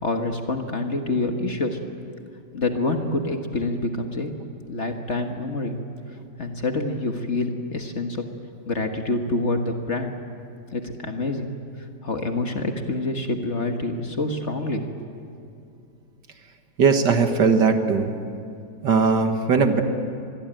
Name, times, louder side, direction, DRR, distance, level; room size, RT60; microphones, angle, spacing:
voice 1, 0.0-1.8 2.5-4.3 4.7-5.7 6.4-8.3 8.6-10.1 10.7-11.5 12.0-15.1, left 2 dB, 40° left, 4 dB, 1.7 m, -27 dB
voice 2, 16.8-18.1 18.8-19.8, right 5 dB, 65° right, 6 dB, 2.1 m, -19 dB
25.0 x 21.5 x 9.1 m, 2.5 s
omnidirectional pair, 2.0 m